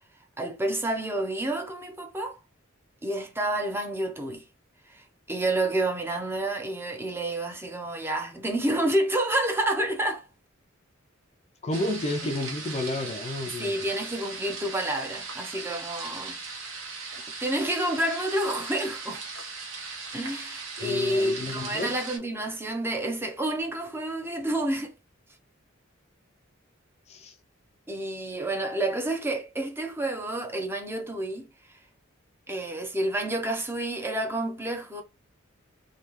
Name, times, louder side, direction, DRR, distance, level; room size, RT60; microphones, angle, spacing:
voice 1, 0.4-2.4 3.0-4.4 4.9-10.3 12.2-12.3 13.6-16.4 17.4-19.2 20.1-24.9 27.9-31.5 32.5-35.0, right 1 dB, 10° right, 0.6 m, -29 dB
voice 2, 11.6-13.8 20.8-22.0 27.1-27.3, left 2 dB, 30° left, 0.4 m, -31 dB
sound 1, 11.7-22.2, right 4 dB, 75° right, 1.0 m, -38 dB
3.3 x 2.2 x 3.0 m
head